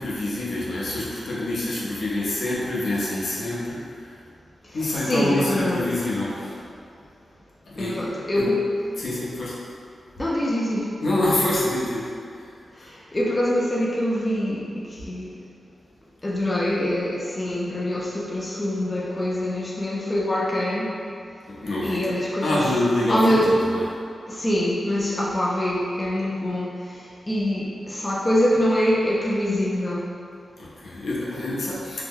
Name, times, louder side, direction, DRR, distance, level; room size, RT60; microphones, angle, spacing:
voice 1, 0.0-4.1 4.7-6.6 7.7-8.0 8.3-8.5 9.0-9.6 11.0-12.1 12.4-12.5 12.8-12.9 21.5-22.0 22.4-23.8 30.6-32.0, left 1 dB, 75° left, -7 dB, 0.6 m, -26 dB
voice 2, 4.7-5.9 7.8-8.6 10.2-10.9 12.8-15.3 16.2-20.9 21.8-22.7 23.1-23.5 24.3-26.8 27.3-30.1, left 1 dB, 20° left, -5 dB, 0.3 m, -24 dB
2.7 x 2.0 x 3.6 m, 2.4 s
wide cardioid pair, 135°, 0 cm